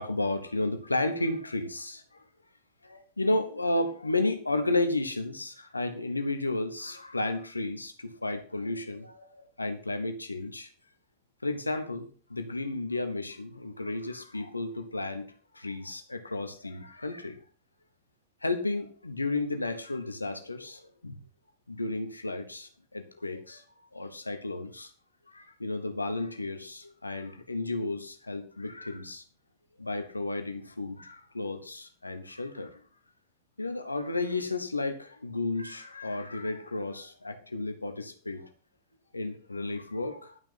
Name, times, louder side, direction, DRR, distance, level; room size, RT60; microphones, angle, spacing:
voice 1, 0.0-2.0 2.8-10.7 11.4-15.2 15.5-17.4 18.4-21.2 21.7-23.6 23.9-24.9 25.3-29.2 29.8-32.7 33.6-38.5 39.1-40.4, left 2 dB, 80° left, 8 dB, 1.1 m, -33 dB
11.0 x 5.9 x 5.7 m, 0.40 s
figure-of-eight pair, 90°, 0 cm